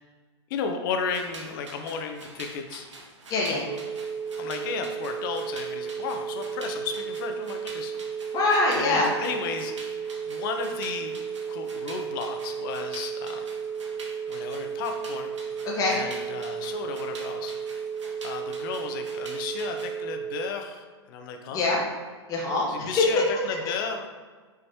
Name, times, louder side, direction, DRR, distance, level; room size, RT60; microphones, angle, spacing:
voice 1, 0.5-2.8 4.4-7.9 8.8-11.2 11.5-13.4 14.3-15.3 15.9-17.5 18.2-21.6 22.7-24.1, left 5 dB, 45° left, 4 dB, 0.6 m, -34 dB
sound 1, 1.0-20.0, right 2 dB, 80° right, 0.9 m, -46 dB
voice 2, 3.3-3.6 8.3-9.1 15.6-15.9 21.5-21.8 22.3-23.0, left 3 dB, 25° left, -3 dB, 1.0 m, -24 dB
sound 2, 3.7-20.5, right 7 dB, 45° right, 0.4 m, -34 dB
5.5 x 3.2 x 2.8 m, 1.4 s
hypercardioid pair, 110°, 15 cm